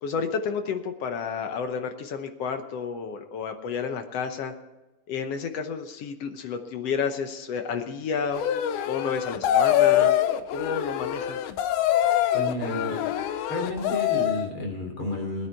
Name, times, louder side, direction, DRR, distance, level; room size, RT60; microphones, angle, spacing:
voice 1, 0.0-4.5 5.1-8.4 8.9-10.2 10.5-11.4, left 6 dB, 65° left, 7 dB, 1.7 m, -31 dB
sound 1, 8.3-14.5, left 11 dB, 85° left, 2.2 m, -24 dB
voice 2, 12.3-13.0 13.5-15.5, left 1 dB, 40° left, 2 dB, 3.9 m, -31 dB
20.0 x 9.8 x 4.6 m, 1.1 s
omnidirectional pair, 3.6 m